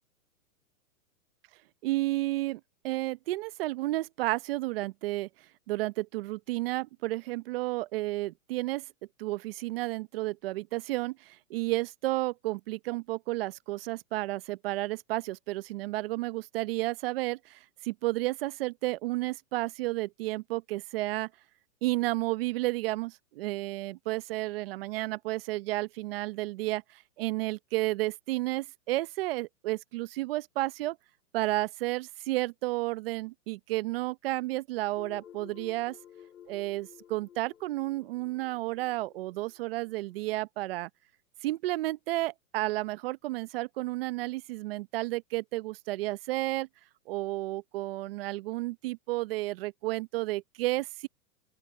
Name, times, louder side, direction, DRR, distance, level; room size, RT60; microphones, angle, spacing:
voice 1, 1.8-5.3 5.7-8.8 9.2-21.3 21.8-31.0 31.3-36.0 36.5-40.9 41.4-46.7 47.1-51.1, right 19 dB, 40° right, 0.9 m, -32 dB
sound 1, 35.0-40.3, left 9 dB, 90° left, 7.0 m, -53 dB
open air
hypercardioid pair, 150°, 45 cm